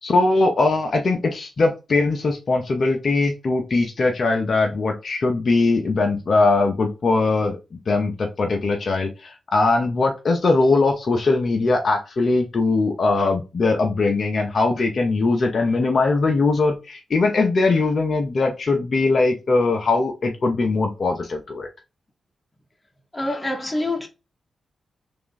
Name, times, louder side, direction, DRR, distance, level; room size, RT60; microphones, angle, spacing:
voice 1, 0.0-7.6 7.9-21.7, left 3 dB, 60° left, 0.8 m, -20 dB
voice 2, 23.1-24.1, left 2 dB, 20° left, 1.2 m, -26 dB
3.5 x 3.0 x 3.9 m
supercardioid pair, 45°, 0 cm